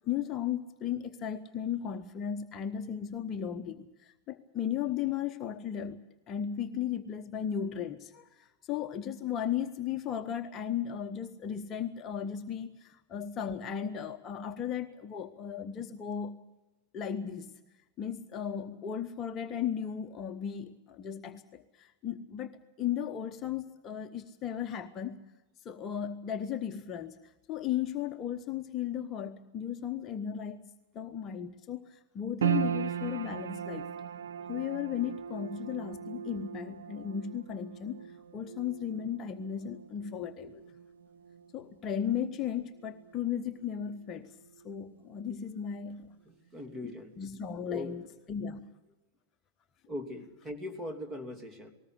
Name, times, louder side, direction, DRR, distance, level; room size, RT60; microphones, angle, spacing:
voice 1, 0.0-16.4 16.9-17.5 18.0-25.2 25.6-33.9 34.5-40.6 41.5-44.3 44.6-46.1 46.8-48.7, left 9 dB, 30° left, 7 dB, 1.0 m, -36 dB
sound 1, 32.4-44.8 45.1-46.0 46.5-46.6, right 9 dB, 65° right, 1.1 m, -39 dB
voice 2, 46.5-47.1 47.6-47.9 49.9-51.7, left 1 dB, 15° right, 7 dB, 3.1 m, -40 dB
20.0 x 19.0 x 8.2 m, 1.1 s
figure-of-eight pair, 90°, 0 cm